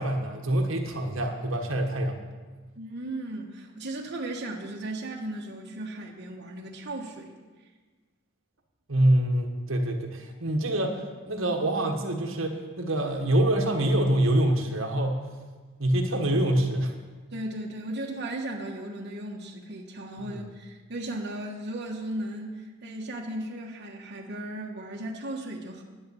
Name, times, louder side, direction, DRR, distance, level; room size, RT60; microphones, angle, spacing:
voice 1, 0.0-2.2 8.9-15.2 15.8-17.0 20.3-20.4, right 1 dB, 75° right, 3 dB, 1.5 m, -25 dB
voice 2, 2.8-7.3 17.3-25.8, right 1 dB, 55° right, -2 dB, 1.3 m, -36 dB
11.0 x 9.6 x 7.0 m, 1.4 s
head